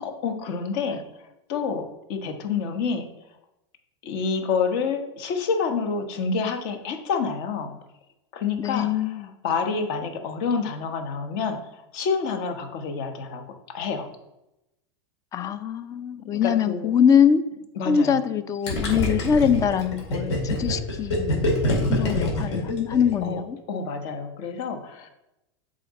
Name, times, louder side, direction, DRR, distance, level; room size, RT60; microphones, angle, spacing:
voice 1, 0.0-3.1 4.0-7.7 8.3-14.1 16.3-16.9 17.8-18.2 22.5-22.7 23.2-23.4 23.7-25.1, left 5 dB, 55° left, 6 dB, 1.1 m, -28 dB
voice 2, 8.6-9.3 15.3-17.4 17.9-21.5 21.9-23.6, left 7 dB, 25° left, 13 dB, 0.4 m, -23 dB
Gurgling, 18.7-23.3, left 1 dB, 75° left, 2.5 m, -25 dB
7.6 x 3.8 x 4.1 m, 0.91 s
supercardioid pair, 125°, 15 cm